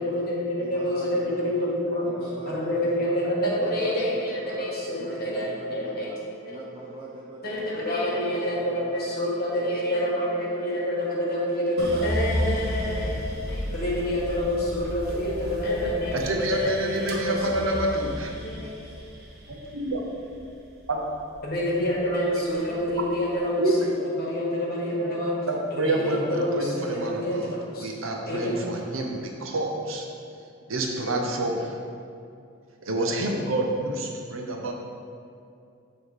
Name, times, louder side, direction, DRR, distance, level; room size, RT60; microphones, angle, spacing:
voice 1, 0.0-2.1 2.4-6.4 7.4-17.9 18.4-18.8 21.4-23.8 24.0-25.3 25.7-27.9 28.2-28.7, equal, 50° left, -4 dB, 1.4 m, -27 dB
voice 2, 0.6-1.7 2.0-3.2 3.6-4.6 4.9-6.2 6.5-7.7 8.0-9.2 9.6-10.7 13.3-13.8, right 2 dB, 25° right, -2 dB, 0.5 m, -42 dB
sound 1, 11.8-22.0 22.4-23.2, equal, 50° right, 0.9 m, -33 dB
voice 3, 16.1-18.3 19.5-20.0 20.9-21.0 21.3-21.4 23.6-23.9 25.5-30.0 30.7-31.7 32.8-34.7, right 1 dB, 80° right, 1 dB, 0.8 m, -28 dB
7.4 x 3.1 x 4.8 m, 2.5 s
head